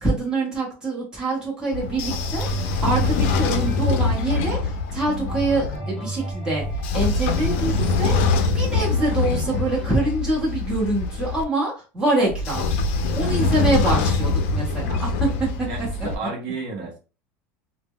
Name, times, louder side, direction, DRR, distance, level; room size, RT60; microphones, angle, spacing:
voice 1, 0.0-12.7 13.1-15.7, right 2 dB, 10° right, -5 dB, 0.9 m, -25 dB
Train / Sliding door, 1.7-5.8 6.6-11.4 12.3-16.2, left 3 dB, 70° left, 0.4 m, -24 dB
sound 1, 2.3-10.2, right 1 dB, 10° left, 0.6 m, -34 dB
voice 2, 13.2-13.5 15.7-17.0, right 3 dB, 50° right, 0 dB, 0.7 m, -32 dB
2.1 x 2.0 x 3.6 m, 0.33 s
cardioid pair, 180°, 7 cm